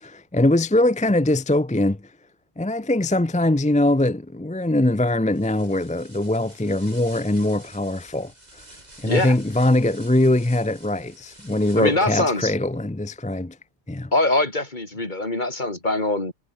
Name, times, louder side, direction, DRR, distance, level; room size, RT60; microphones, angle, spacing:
voice 1, 0.0-2.0 2.6-8.3 9.0-13.6 13.9-14.1, left 1 dB, 10° left, 0.5 m, -22 dB
sound 1, 5.3-12.2, right 1 dB, 40° right, 6.2 m, -48 dB
voice 2, 9.0-9.4 11.8-12.5 14.1-16.3, left 2 dB, 45° left, 3.6 m, -23 dB
omnidirectional pair, 1.1 m